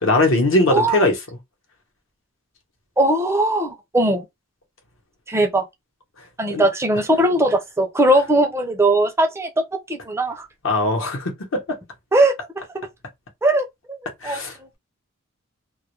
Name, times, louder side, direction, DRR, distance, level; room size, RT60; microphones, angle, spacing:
voice 1, 0.0-1.1 6.5-6.6 10.6-11.8 14.2-14.5, left 2 dB, 70° left, 0.8 m, -20 dB
voice 2, 0.7-1.0 3.0-4.2 5.3-5.6 6.4-9.5 9.9-10.5 12.1-12.3 12.7-12.9 13.4-14.0 14.2-14.4, right 1 dB, 15° right, 0.4 m, -19 dB
2.3 x 2.1 x 2.9 m
head